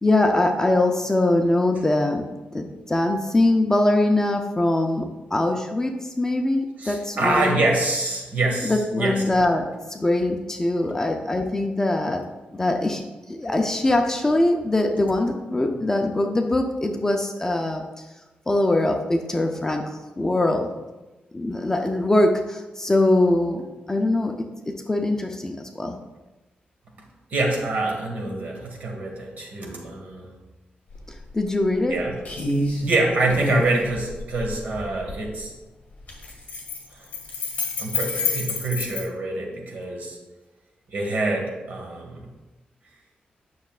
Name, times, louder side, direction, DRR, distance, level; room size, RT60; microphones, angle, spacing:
voice 1, 0.0-2.2 2.5-7.7 8.6-12.2 12.5-13.0 13.3-17.9 18.5-19.9 20.2-20.7 21.3-23.6 23.9-24.3 24.7-26.0 31.3-31.9 39.3-39.4, left 2 dB, 15° left, 4 dB, 0.5 m, -22 dB
voice 2, 6.8-9.2 27.3-30.3 31.9-32.2 32.8-35.5 37.8-40.2 40.9-42.3, right 2 dB, 55° right, 0 dB, 1.6 m, -25 dB
sound 1, 30.9-31.0 31.4-31.9 32.2-32.8 33.3-35.2 36.0-39.0, left 3 dB, 40° left, 1.9 m, -28 dB
9.4 x 6.3 x 2.4 m, 1.1 s
wide cardioid pair, 160°, 3 cm